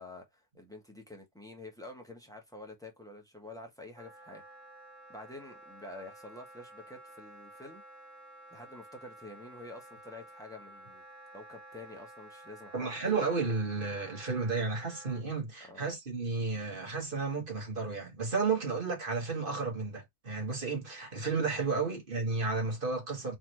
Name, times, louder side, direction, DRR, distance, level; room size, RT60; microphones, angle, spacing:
voice 1, 0.0-4.4 5.1-7.8 8.5-11.0 11.3-13.0 15.6-15.8 21.7-21.9, left 2 dB, 5° left, 1.1 m, -48 dB
Wind instrument woodwind instrument, 3.9-15.2, right 1 dB, 20° right, 2.2 m, -52 dB
voice 2, 12.7-23.4, right 4 dB, 40° right, 1.7 m, -32 dB
4.0 x 3.3 x 3.0 m
omnidirectional pair, 1.4 m